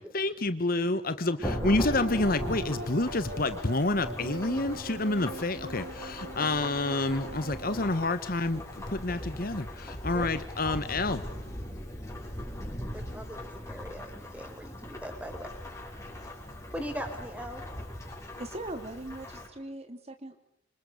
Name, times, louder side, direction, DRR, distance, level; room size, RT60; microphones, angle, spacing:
voice 1, 0.1-11.2, left 2 dB, 45° left, 12 dB, 1.3 m, -29 dB
Thunderstorm / Rain, 1.4-19.5, equal, 15° left, 5.9 m, -39 dB
sound 1, 1.4-7.8, right 1 dB, 50° right, 1.7 m, -41 dB
voice 2, 12.9-15.5 16.7-17.6, equal, 5° right, 6 dB, 4.9 m, -40 dB
voice 3, 18.4-20.4, right 1 dB, 30° right, 7 dB, 2.5 m, -40 dB
27.5 x 26.5 x 8.3 m, 0.64 s
head